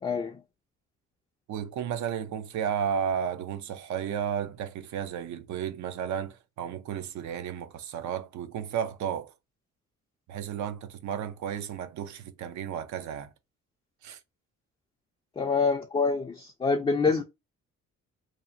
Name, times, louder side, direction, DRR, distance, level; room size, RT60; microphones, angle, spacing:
voice 1, 0.0-0.4 15.4-17.2, left 4 dB, 20° left, 0.4 m, -26 dB
voice 2, 1.5-9.3 10.3-13.3 14.0-14.2, right 8 dB, 70° right, 0.6 m, -33 dB
2.7 x 2.1 x 2.5 m
cardioid pair, 90°, 30 cm